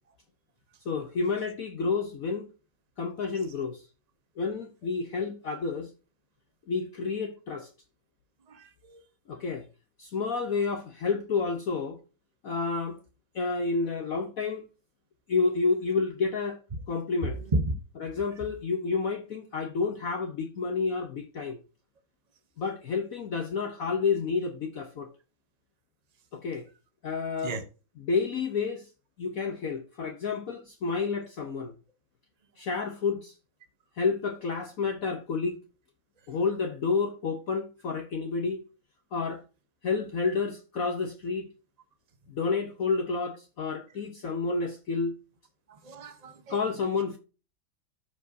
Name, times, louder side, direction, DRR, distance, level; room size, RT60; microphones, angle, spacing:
voice 1, 0.8-2.5 3.0-3.8 4.4-5.9 6.7-7.7 9.3-9.7 10.0-12.0 12.4-13.0 13.3-14.6 15.3-16.6 16.9-17.4 18.0-21.6 22.6-25.1 26.3-26.7 27.0-27.5 28.0-28.9 29.2-31.7 32.6-33.3 34.0-35.6 36.3-38.6 39.1-39.4 39.8-41.5 42.3-45.2 46.5-47.2, left 4 dB, 55° left, 1.0 m, -30 dB
voice 2, 8.5-9.0 17.2-17.7 27.4-27.6 45.7-46.6, right 2 dB, 75° right, 0.3 m, -32 dB
13.5 x 5.0 x 2.7 m
omnidirectional pair, 2.1 m